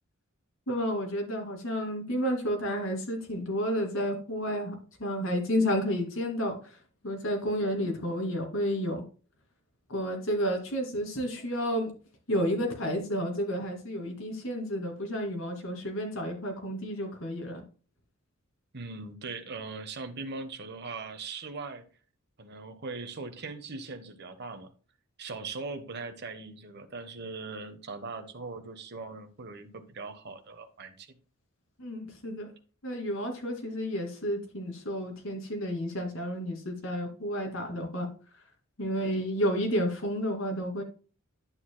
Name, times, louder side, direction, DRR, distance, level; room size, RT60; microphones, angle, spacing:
voice 1, 0.7-4.7 5.0-6.8 7.0-9.0 9.9-11.9 12.3-17.6 31.8-32.5 32.8-38.1 38.8-40.8, equal, 65° left, 2 dB, 2.5 m, -31 dB
voice 2, 18.7-21.9 22.4-24.7 25.2-31.2, right 3 dB, 50° right, 7 dB, 1.1 m, -40 dB
10.5 x 7.1 x 2.2 m, 0.37 s
head